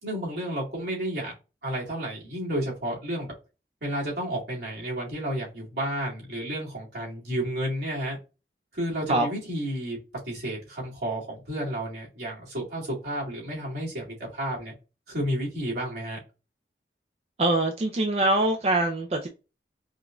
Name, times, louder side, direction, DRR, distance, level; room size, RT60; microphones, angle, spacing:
voice 1, 0.0-1.3 1.6-3.3 3.8-8.2 8.7-10.0 10.3-14.7 15.1-16.2, right 1 dB, 75° right, 2.1 m, -31 dB
voice 2, 17.4-19.3, right 2 dB, 35° right, 0.4 m, -23 dB
4.9 x 2.5 x 2.2 m
head